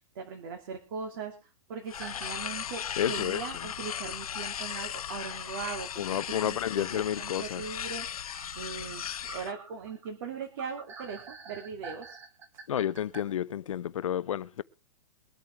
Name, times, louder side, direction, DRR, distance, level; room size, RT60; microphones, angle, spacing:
voice 1, 0.1-12.2, right 5 dB, 40° right, 2.7 m, -40 dB
sound 1, 1.9-9.5, left 9 dB, 90° left, 0.9 m, -37 dB
sound 2, 2.0-2.3 2.8-2.9 4.3-4.4 5.0-5.1 5.4-5.5 8.3-13.2, right 4 dB, 10° right, 1.2 m, -47 dB
voice 2, 3.0-3.4 6.0-7.6 12.7-14.6, left 10 dB, 65° left, 0.9 m, -31 dB
23.5 x 8.9 x 3.4 m
hypercardioid pair, 175°, 18 cm